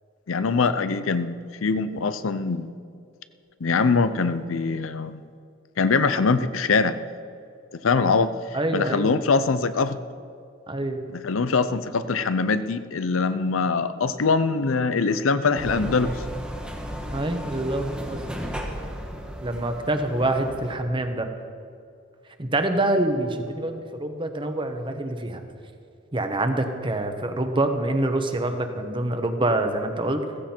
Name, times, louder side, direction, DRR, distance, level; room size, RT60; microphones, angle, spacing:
voice 1, 0.3-2.7 3.6-5.2 5.8-7.0 7.7-8.3 8.7-10.0 11.1-16.2, left 4 dB, 90° left, 13 dB, 0.6 m, -23 dB
voice 2, 8.5-9.1 10.7-11.0 17.1-18.2 19.4-21.3 22.4-25.4 26.1-30.2, right 1 dB, 25° right, 6 dB, 1.1 m, -26 dB
sound 1, 15.5-20.7, equal, 5° right, 1.3 m, -34 dB
15.0 x 15.0 x 4.4 m, 2.5 s
head